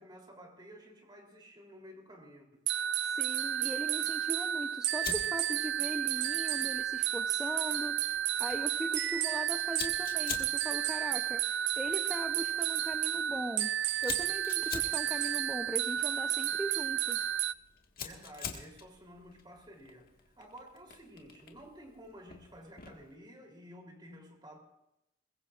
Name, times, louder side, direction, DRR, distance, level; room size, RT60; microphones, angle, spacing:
voice 1, 0.0-2.6 18.0-20.1 20.4-24.6, equal, 25° right, 1 dB, 3.3 m, -52 dB
sound 1, 2.7-17.5, right 11 dB, 65° right, 0.4 m, -32 dB
voice 2, 3.0-13.8 14.0-17.2, equal, 5° right, 5 dB, 0.7 m, -40 dB
Fire, 5.0-23.1, left 7 dB, 50° left, 1.7 m, -47 dB
21.5 x 21.0 x 2.5 m, 0.87 s
head